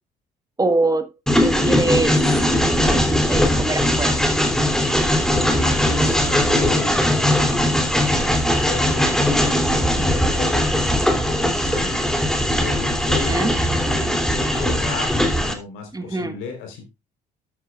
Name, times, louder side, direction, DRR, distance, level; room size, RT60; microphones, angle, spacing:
voice 1, 0.6-1.1 1.4-2.4 2.9-4.2 13.3-13.5 15.9-16.3, right 2 dB, 20° right, 9 dB, 1.5 m, -24 dB
Train, 1.3-15.5, equal, 5° left, 2.8 m, -19 dB
voice 2, 5.1-7.9 8.4-10.7 11.3-12.0 12.6-16.9, left 6 dB, 75° left, 5 dB, 3.9 m, -34 dB
13.0 x 8.8 x 2.4 m, 0.23 s
hypercardioid pair, 55°, 21 cm